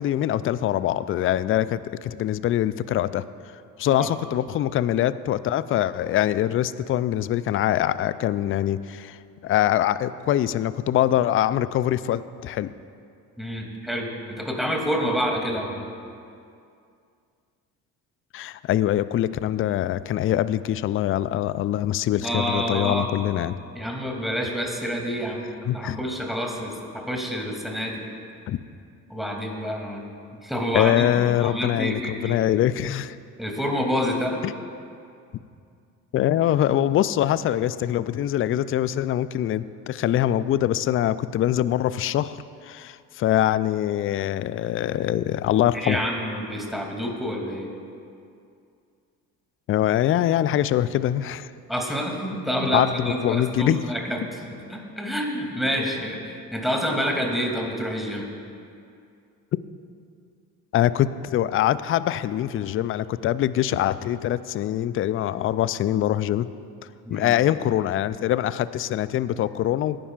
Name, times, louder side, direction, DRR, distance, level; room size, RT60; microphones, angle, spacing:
voice 1, 0.0-3.2 3.8-9.2 9.4-12.7 18.3-23.6 25.7-26.0 28.5-28.6 30.7-33.2 34.4-34.5 36.1-42.4 42.6-46.0 49.7-51.5 52.7-53.9 60.7-66.5 67.1-70.1, left 12 dB, 30° left, 16 dB, 0.4 m, -23 dB
voice 2, 13.4-15.9 22.2-23.1 23.7-28.0 29.1-30.1 30.4-32.4 33.4-34.4 45.7-47.7 51.7-58.2 67.0-67.3, equal, ahead, 0 dB, 2.6 m, -28 dB
18.0 x 10.0 x 2.5 m, 2.4 s
hypercardioid pair, 60°, 46 cm